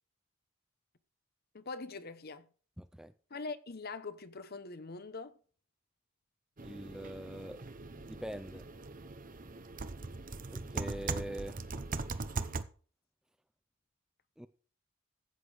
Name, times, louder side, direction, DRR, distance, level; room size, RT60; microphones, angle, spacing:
voice 1, 1.5-2.5 3.3-5.4, left 3 dB, 45° left, 0.9 m, -43 dB
voice 2, 2.8-3.1 6.6-7.6 8.1-8.7 10.5-11.6 14.4-14.5, right 1 dB, 5° right, 0.4 m, -43 dB
sound 1, 6.6-12.6, right 3 dB, 40° right, 0.8 m, -40 dB
14.5 x 8.3 x 5.0 m
head